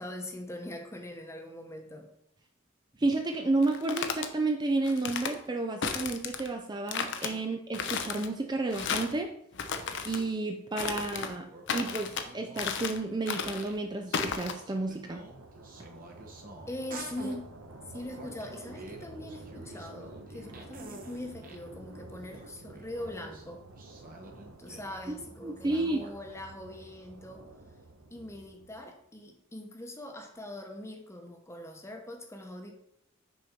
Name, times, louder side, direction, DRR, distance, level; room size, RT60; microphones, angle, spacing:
voice 1, 0.0-2.1 7.3-7.4 16.7-17.5 17.8-23.6 24.6-27.5 28.1-32.7, left 1 dB, 15° left, 4 dB, 1.0 m, -42 dB
voice 2, 3.0-9.3 10.0-15.2 25.4-26.0, right 2 dB, 20° right, 4 dB, 0.5 m, -31 dB
sound 1, 3.6-4.3 4.9-5.3 5.8-6.5 6.9-7.3 7.7-8.3 8.7-9.2 9.5-10.2 10.8-11.3 11.7-12.3 12.6-13.0 13.3-13.7 14.1-14.5, left 6 dB, 60° left, 0.7 m, -34 dB
sound 2, 11.5-12.9 13.3-13.8 14.1-17.4 17.9-21.7 22.1-25.1 25.7-26.3, right 2 dB, 45° right, 1.0 m, -48 dB
sound 3, 13.0-29.0, right 2 dB, 75° right, 1.0 m, -50 dB
6.3 x 4.4 x 5.1 m, 0.75 s
head